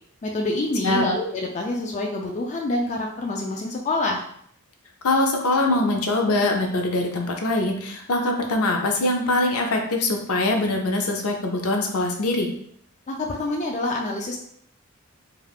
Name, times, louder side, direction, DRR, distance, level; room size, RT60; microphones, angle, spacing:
voice 1, 0.2-4.2 13.1-14.4, left 2 dB, 35° left, 0 dB, 0.3 m, -26 dB
voice 2, 5.0-12.5, left 2 dB, 75° left, 2 dB, 0.6 m, -23 dB
3.3 x 2.4 x 2.4 m, 0.65 s
head